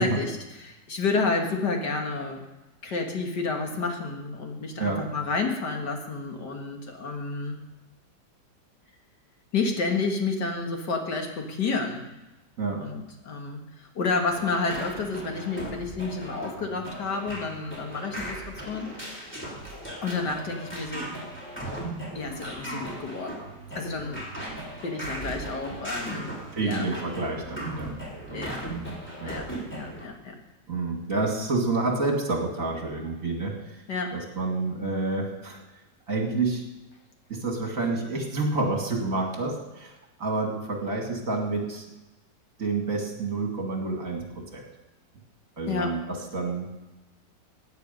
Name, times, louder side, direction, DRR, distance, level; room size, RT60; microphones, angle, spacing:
voice 1, 0.0-2.4 2.8-7.6 9.5-12.0 12.7-19.3 20.0-21.1 22.1-23.4 23.8-24.2 24.8-26.3 26.6-26.9 28.3-28.6 29.2-29.5 29.7-30.4 33.9-34.2 45.7-45.9, left 4 dB, 70° left, 3 dB, 2.3 m, -30 dB
sound 1, 14.3-30.0, right 1 dB, 5° left, 3.3 m, -38 dB
voice 2, 26.5-27.9 28.3-28.9 29.2-29.4 30.7-33.5 34.1-35.6 36.1-36.7 37.3-41.9 42.6-44.6 45.6-46.7, right 3 dB, 45° right, 1 dB, 2.7 m, -29 dB
16.0 x 9.3 x 5.3 m, 1.0 s
omnidirectional pair, 1.9 m